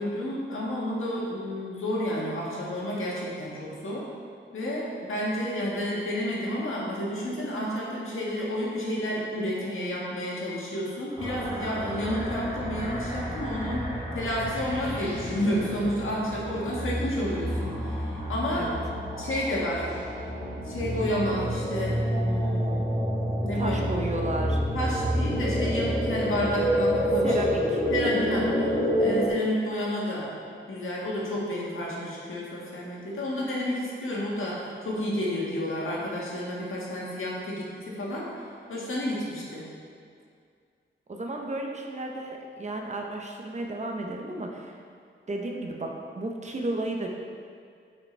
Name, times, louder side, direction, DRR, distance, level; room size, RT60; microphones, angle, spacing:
voice 1, 0.0-4.1 4.5-13.9 14.1-18.7 19.2-19.8 20.6-22.9 23.4-24.0 24.7-27.3 27.9-28.7 29.0-30.3 30.7-38.3 38.7-39.6, equal, 85° left, -5 dB, 1.6 m, -30 dB
sound 1, 11.2-29.3, equal, 20° right, 1.6 m, -29 dB
voice 2, 23.5-24.6 27.2-27.8 41.1-44.8 45.3-47.1, right 1 dB, 35° right, 1 dB, 0.7 m, -33 dB
8.9 x 5.1 x 3.2 m, 2.2 s
wide cardioid pair, 155°, 20 cm